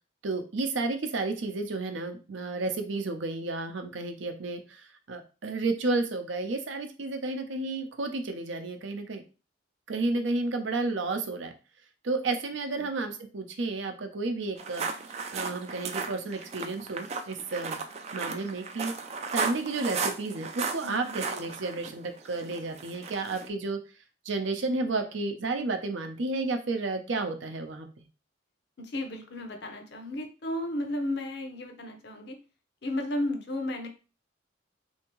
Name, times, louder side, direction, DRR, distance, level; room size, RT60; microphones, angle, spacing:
voice 1, 0.2-4.6 5.1-9.2 9.9-11.5 12.0-14.8 15.3-17.8 18.1-18.9 19.3-23.8 24.3-28.0, right 3 dB, 75° right, 6 dB, 0.6 m, -31 dB
sound 1, 14.6-23.5, right 5 dB, 35° right, 0.3 m, -35 dB
voice 2, 20.8-21.2 28.8-32.4 32.8-33.9, left 1 dB, 60° left, 5 dB, 0.7 m, -33 dB
3.4 x 2.7 x 3.0 m, 0.34 s
head